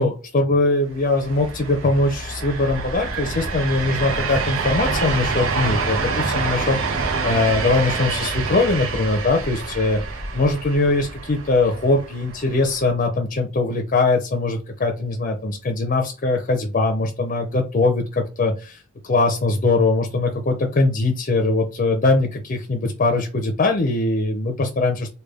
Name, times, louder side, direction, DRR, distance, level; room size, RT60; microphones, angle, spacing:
voice 1, 0.0-10.0 10.3-25.1, left 2 dB, 40° left, 3 dB, 0.5 m, -21 dB
sound 1, 1.0-12.9, right 4 dB, 90° right, 0.8 m, -27 dB
3.3 x 2.2 x 3.5 m, 0.33 s
head